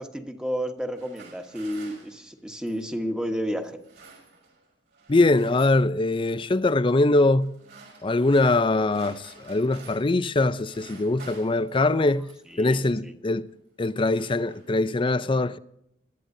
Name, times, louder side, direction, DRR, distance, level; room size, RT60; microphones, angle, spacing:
voice 1, 0.0-3.9 12.0-12.1 12.5-13.1, equal, 5° right, 1.2 m, -31 dB
sound 1, 0.8-3.0 3.6-4.7 4.9-5.9 6.3-6.7 7.4-10.2 10.5-12.6 13.4-13.6 13.9-15.0, right 4 dB, 65° right, 5.3 m, -50 dB
voice 2, 5.1-7.5 8.0-12.3 12.6-13.5 13.8-15.6, left 2 dB, 30° left, 0.5 m, -22 dB
21.5 x 12.5 x 2.7 m
head